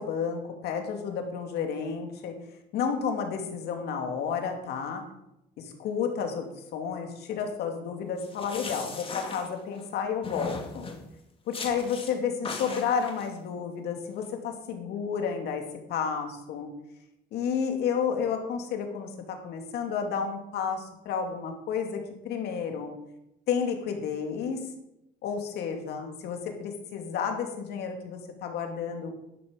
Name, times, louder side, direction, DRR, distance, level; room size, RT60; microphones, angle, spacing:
voice 1, 0.0-2.3 2.7-5.0 5.6-6.4 6.7-10.9 11.5-15.6 15.9-16.7 17.3-22.9 23.5-24.6 25.2-29.1, left 6 dB, 75° left, 4 dB, 2.6 m, -31 dB
sound 1, 8.2-9.9 10.2-11.0 11.5-12.1 12.4-13.3, left 4 dB, 30° left, 2.4 m, -38 dB
11.5 x 10.0 x 5.3 m, 0.85 s
cardioid pair, 110°, 17 cm